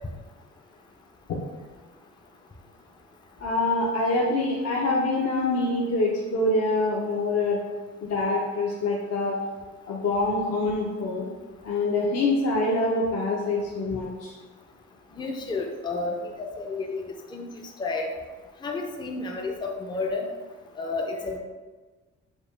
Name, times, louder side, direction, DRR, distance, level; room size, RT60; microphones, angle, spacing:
voice 1, 3.4-7.6 8.0-9.4 9.9-11.3 11.6-14.3, left 2 dB, 55° left, -3 dB, 0.7 m, -25 dB
voice 2, 15.2-17.0 17.3-17.5 17.8-18.1 18.6-20.3 20.8-21.4, left 3 dB, 15° left, 2 dB, 0.4 m, -31 dB
5.1 x 2.2 x 3.2 m, 1.3 s
cardioid pair, 90°, 30 cm